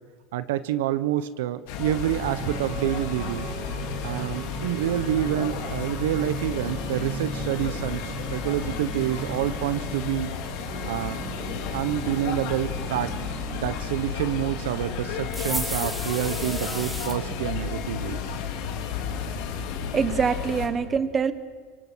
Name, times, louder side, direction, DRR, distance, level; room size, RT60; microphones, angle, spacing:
voice 1, 0.3-3.5 4.0-8.0 8.3-10.3 10.8-11.2 11.7-13.2 13.5-18.2, right 12 dB, 85° right, 13 dB, 1.0 m, -28 dB
sound 1, 1.7-20.7, left 7 dB, 65° left, 3.3 m, -33 dB
sound 2, 2.2-17.5, right 5 dB, 50° right, 2.7 m, -39 dB
sound 3, 15.3-17.2, equal, 5° right, 2.3 m, -33 dB
voice 2, 19.9-21.3, right 6 dB, 20° right, 11 dB, 1.3 m, -24 dB
24.5 x 24.5 x 6.4 m, 1.5 s
supercardioid pair, 140°, 0 cm